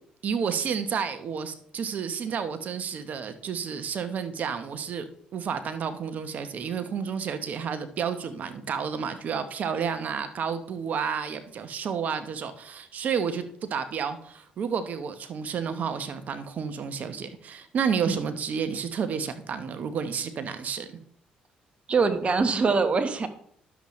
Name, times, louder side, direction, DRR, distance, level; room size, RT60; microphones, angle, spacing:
voice 1, 0.2-21.0, right 6 dB, 60° right, 10 dB, 1.0 m, -31 dB
voice 2, 21.9-23.3, right 4 dB, 40° right, 8 dB, 1.2 m, -23 dB
11.0 x 7.1 x 3.2 m, 0.64 s
supercardioid pair, 65°, 3 cm